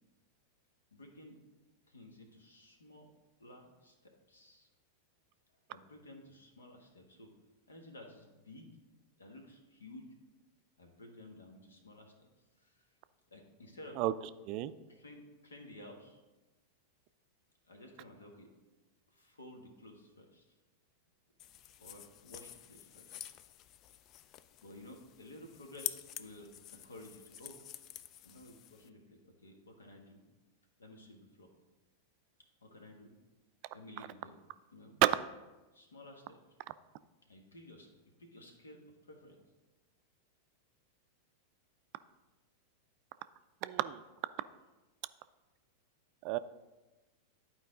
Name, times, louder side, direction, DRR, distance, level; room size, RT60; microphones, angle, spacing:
voice 1, 0.9-1.4 1.9-3.1 3.4-4.7 5.7-7.3 7.7-8.7 9.2-10.1 10.8-12.3 12.6-12.8 13.3-14.0 14.9-16.2 17.7-18.5 19.1-20.4 21.8-23.2 24.6-27.6 28.2-30.2 30.8-31.5 32.6-33.1 33.7-34.4 34.7-35.0 35.7-36.4 37.2-37.9 38.2-39.4, left 1 dB, 80° left, 3 dB, 1.4 m, -54 dB
sound 1, 21.4-28.9, left 12 dB, 40° left, 0.3 m, -48 dB
voice 2, 43.6-44.0 46.2-46.4, right 16 dB, 45° right, 14 dB, 0.3 m, -29 dB
11.0 x 4.6 x 3.8 m, 1.1 s
figure-of-eight pair, 95°, 0 cm